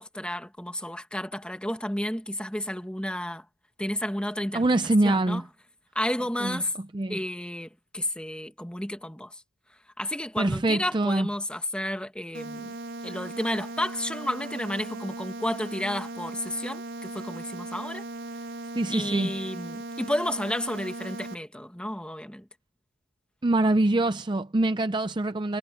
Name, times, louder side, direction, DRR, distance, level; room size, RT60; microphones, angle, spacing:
voice 1, 0.0-3.4 3.8-4.6 5.0-5.4 5.9-6.7 7.1-9.4 10.0-12.7 13.0-18.0 18.9-22.4, left 1 dB, 5° left, 1.5 m, -31 dB
voice 2, 4.5-5.4 6.4-6.6 6.9-7.2 10.4-11.3 18.7-19.3 23.4-25.6, right 2 dB, 20° right, 0.5 m, -24 dB
sound 1, 12.3-21.3, right 2 dB, 65° right, 2.0 m, -38 dB
head